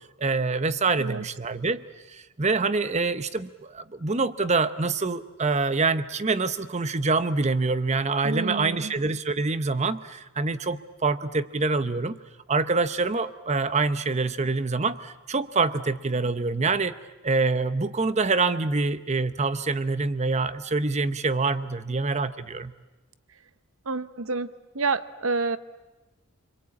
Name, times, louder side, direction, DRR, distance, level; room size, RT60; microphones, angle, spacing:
voice 1, 0.2-12.2 12.5-16.9 17.2-22.7, right 3 dB, 30° right, 13 dB, 0.8 m, -26 dB
voice 2, 8.2-8.9 23.8-25.6, right 4 dB, 65° right, 14 dB, 0.9 m, -29 dB
28.0 x 22.0 x 8.5 m, 1.1 s
head